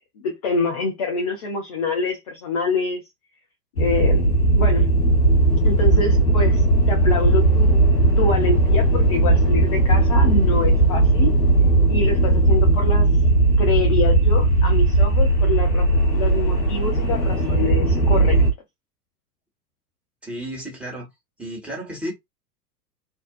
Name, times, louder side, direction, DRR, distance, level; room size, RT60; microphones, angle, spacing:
voice 1, 0.2-3.0 3.8-4.2 4.5-4.9 5.6-7.8 8.2-11.3 11.9-13.1 13.6-15.8 16.1-18.4, left 4 dB, 25° left, 0.3 m, -26 dB
sound 1, 3.8-18.5, right 2 dB, 85° left, 0.7 m, -17 dB
voice 2, 20.2-21.1 21.4-22.1, equal, ahead, 1.2 m, -32 dB
2.5 x 2.1 x 2.3 m
figure-of-eight pair, 95°, 50 cm